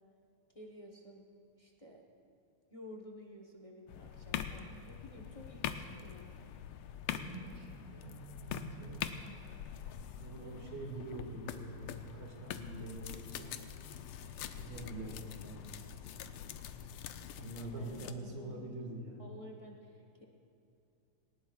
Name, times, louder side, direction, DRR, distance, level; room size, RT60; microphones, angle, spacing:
voice 1, 0.5-1.2 1.6-2.0 2.7-6.3 10.4-10.7 17.7-18.7 19.2-20.3, left 1 dB, 40° left, 0 dB, 0.4 m, -52 dB
sound 1, 3.9-18.1, left 9 dB, 80° left, 1.5 m, -44 dB
voice 2, 7.1-9.2 10.2-13.5 14.5-15.7 17.3-19.2, right 2 dB, 55° right, 0 dB, 2.7 m, -45 dB
19.0 x 19.0 x 2.4 m, 2.6 s
omnidirectional pair, 2.4 m